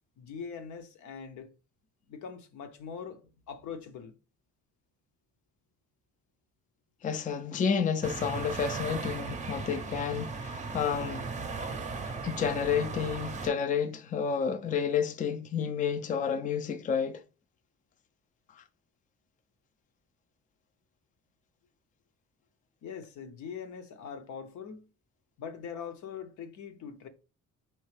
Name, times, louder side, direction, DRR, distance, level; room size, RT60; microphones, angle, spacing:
voice 1, 0.2-1.5 2.1-4.1 22.8-24.9 25.4-27.1, left 6 dB, 75° left, 0.8 m, -42 dB
voice 2, 7.0-11.3 12.2-17.2 18.5-18.6, left 7 dB, 25° left, 0.4 m, -30 dB
sound 1, 8.0-13.5, right 4 dB, 25° right, 0.6 m, -37 dB
4.5 x 3.2 x 3.1 m
cardioid pair, 90°, 30 cm